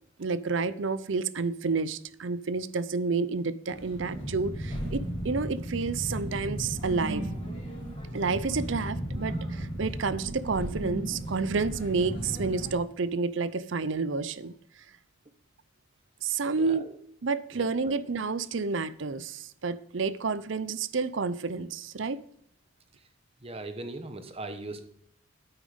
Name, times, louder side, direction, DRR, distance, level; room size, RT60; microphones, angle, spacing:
voice 1, 0.2-7.3 8.1-14.5 16.2-16.9 17.2-22.2, right 4 dB, 65° right, 16 dB, 0.6 m, -30 dB
sound 1, 3.7-12.7, equal, 30° left, 4.1 m, -35 dB
voice 2, 17.5-18.0 23.4-24.8, right 2 dB, 30° right, 8 dB, 1.1 m, -39 dB
9.0 x 8.9 x 5.1 m, 0.67 s
head